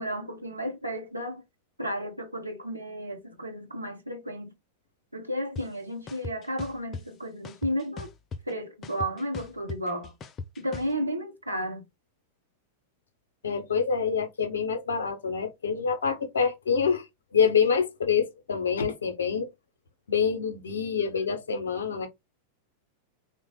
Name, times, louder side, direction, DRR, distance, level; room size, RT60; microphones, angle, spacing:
voice 1, 0.0-1.4 1.8-4.5 5.1-8.1 8.5-10.1 10.6-11.8, equal, 85° right, 0.7 m, -33 dB
sound 1, 5.6-5.7 6.1-7.0 7.4-8.5 8.8-10.9, left 4 dB, 25° left, 0.3 m, -38 dB
voice 2, 13.4-17.0 17.3-19.5 20.1-22.1, left 6 dB, 70° left, 0.6 m, -26 dB
3.2 x 2.0 x 3.0 m
figure-of-eight pair, 90°, 0 cm